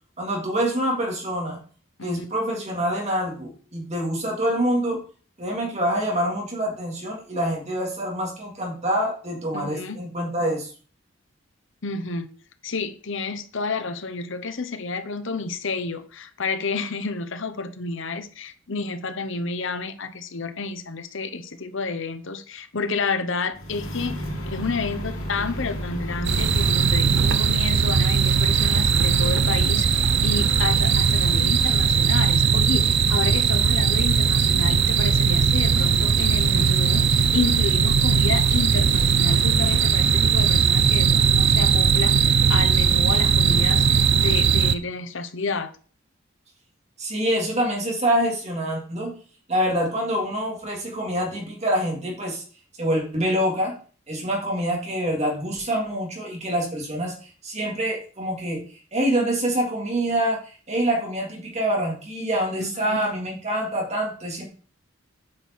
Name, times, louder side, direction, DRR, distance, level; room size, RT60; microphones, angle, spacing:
voice 1, 0.2-1.6 2.0-5.0 5.4-10.7 47.0-49.1 49.5-52.4 52.8-53.8 54.1-64.4, right 1 dB, 35° right, 3.1 m, -26 dB
voice 2, 9.5-10.0 11.8-12.3 12.6-45.7 62.6-63.0, left 4 dB, 65° left, 1.0 m, -30 dB
sound 1, 23.5-27.2, equal, 90° left, 3.1 m, -32 dB
sound 2, 26.2-44.7, right 6 dB, 60° right, 0.6 m, -19 dB
8.8 x 6.0 x 4.7 m
head